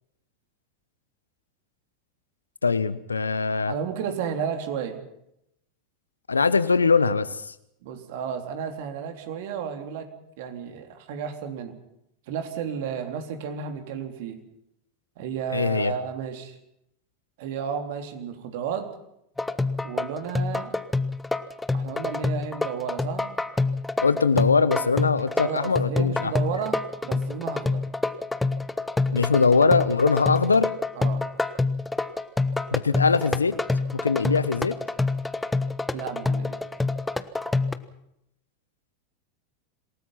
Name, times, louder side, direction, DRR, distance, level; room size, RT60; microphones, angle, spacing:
voice 1, 2.6-3.7 6.3-7.5 15.5-15.9 24.0-26.3 29.1-30.7 32.7-33.5 34.0-34.7, left 4 dB, 90° left, 15 dB, 1.1 m, -22 dB
voice 2, 3.7-5.1 7.8-10.1 10.4-11.8 12.3-14.4 15.2-16.6 17.4-18.9 19.8-20.7 21.7-23.3 25.4-27.9 31.0-31.3 35.9-36.6, right 7 dB, 60° right, 6 dB, 3.7 m, -32 dB
sound 1, 19.4-37.7, left 3 dB, 10° left, 1.3 m, -27 dB
27.5 x 18.5 x 5.9 m, 0.78 s
hypercardioid pair, 90°, 0 cm